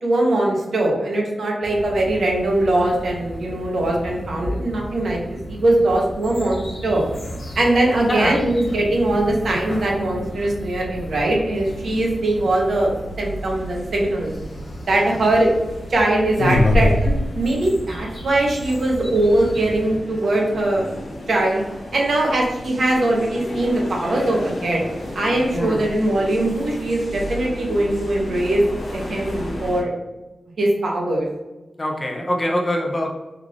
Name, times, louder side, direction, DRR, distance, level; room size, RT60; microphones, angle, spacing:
voice 1, 0.0-7.0 7.5-14.3 14.8-15.5 15.9-20.9 21.3-21.6 21.9-24.8 25.1-29.9 30.6-31.2, right 1 dB, 70° right, -1 dB, 0.9 m, -21 dB
sound 1, 1.6-20.0, equal, 60° left, 1.0 m, -35 dB
voice 2, 8.1-8.4 25.5-25.9 31.8-33.1, left 1 dB, 25° left, 1 dB, 0.5 m, -23 dB
sound 2, 11.6-29.8, left 1 dB, 90° left, 0.9 m, -29 dB
3.5 x 2.4 x 3.2 m, 1.1 s
wide cardioid pair, 175°, 0 cm